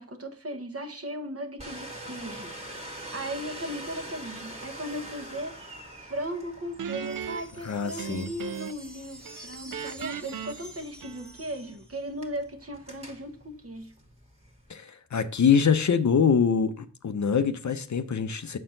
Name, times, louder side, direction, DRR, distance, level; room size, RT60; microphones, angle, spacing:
voice 1, 0.0-5.6 6.0-13.9, equal, 45° right, 1.1 m, -37 dB
Domestic sounds home sounds, 1.6-14.7, right 1 dB, 20° right, 1.6 m, -45 dB
sound 1, 6.7-12.2, right 1 dB, ahead, 1.7 m, -49 dB
Guitar, 6.8-8.9 9.2-11.6, right 7 dB, 70° right, 0.5 m, -38 dB
voice 2, 7.6-8.3 14.7-18.6, left 6 dB, 55° left, 0.6 m, -24 dB
6.6 x 4.4 x 3.8 m
cardioid pair, 50°, 33 cm